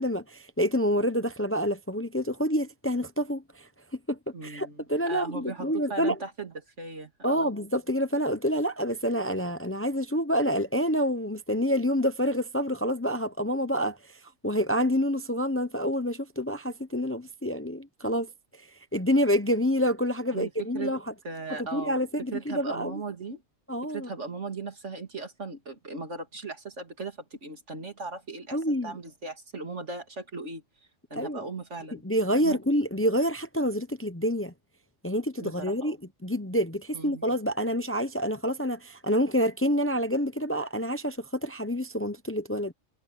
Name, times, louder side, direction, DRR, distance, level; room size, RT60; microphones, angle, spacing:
voice 1, 0.0-3.7 4.1-6.2 7.2-18.3 18.9-21.1 21.5-23.0 23.7-24.1 28.5-29.0 31.2-31.4 32.0-34.5 35.0-36.0 36.2-42.7, equal, 15° left, 0.7 m, -27 dB
voice 2, 4.3-7.5 20.3-20.9 21.2-22.0 22.3-23.4 23.8-30.6 31.1-32.0 32.3-32.6 35.4-36.0 36.9-37.2, right 4 dB, 75° right, 3.2 m, -38 dB
omnidirectional pair, 1.2 m